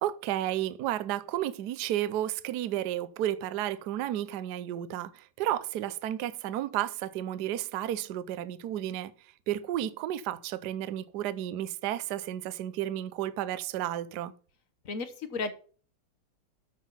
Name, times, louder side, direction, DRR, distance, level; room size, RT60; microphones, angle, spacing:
voice 1, 0.0-9.1 9.5-14.3, right 12 dB, 65° right, 1.0 m, -32 dB
voice 2, 14.8-15.5, left 4 dB, 50° left, 1.2 m, -33 dB
13.0 x 5.6 x 5.8 m
omnidirectional pair, 2.4 m